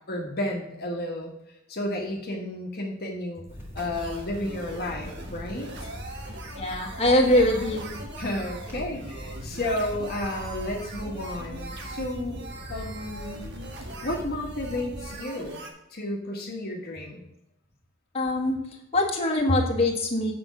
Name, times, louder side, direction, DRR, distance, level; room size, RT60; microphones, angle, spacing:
voice 1, 0.1-1.3 1.7-3.5 3.7-5.9 8.2-12.4 12.7-13.5 14.0-15.6 15.9-17.2 19.5-19.6, left 1 dB, 50° left, 0 dB, 1.4 m, -32 dB
Torch Crackle, 3.5-15.2, equal, 10° right, 2.1 m, -40 dB
sound 1, 3.8-15.7, right 2 dB, 55° right, 1.4 m, -42 dB
voice 2, 6.6-7.9 18.1-18.6 18.9-20.3, left 1 dB, 30° left, 0 dB, 1.4 m, -23 dB
7.9 x 5.3 x 6.1 m, 0.82 s
head